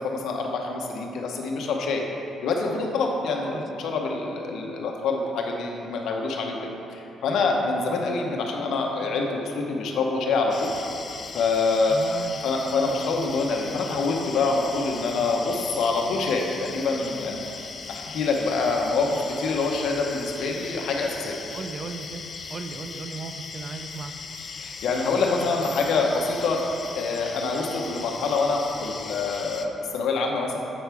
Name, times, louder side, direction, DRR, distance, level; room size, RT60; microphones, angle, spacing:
voice 1, 0.0-2.0 2.4-10.7 11.3-17.5 17.9-21.4 24.6-26.6 27.0-30.6, left 3 dB, 75° left, 1 dB, 0.9 m, -26 dB
sound 1, 10.5-29.7, left 5 dB, 45° left, 0.4 m, -38 dB
voice 2, 11.9-12.4 21.5-24.1, right 4 dB, 45° right, 7 dB, 0.4 m, -36 dB
7.8 x 5.9 x 3.4 m, 2.8 s
cardioid pair, 90°, 0 cm